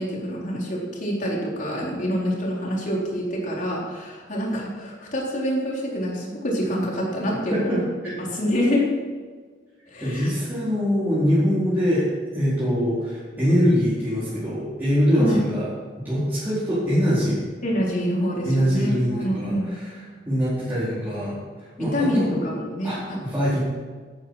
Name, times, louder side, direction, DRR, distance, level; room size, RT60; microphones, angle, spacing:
voice 1, 0.0-7.8 8.2-8.9 9.9-10.3 15.1-15.4 17.6-19.8 21.9-23.2, equal, 45° left, -3 dB, 4.1 m, -26 dB
voice 2, 7.5-8.1 10.0-12.1 12.3-15.7 16.0-17.5 18.4-19.5 19.8-19.9 20.3-21.4 21.8-22.4 22.8-23.6, equal, 10° right, -13 dB, 4.5 m, -23 dB
14.0 x 12.5 x 5.0 m, 1.5 s
head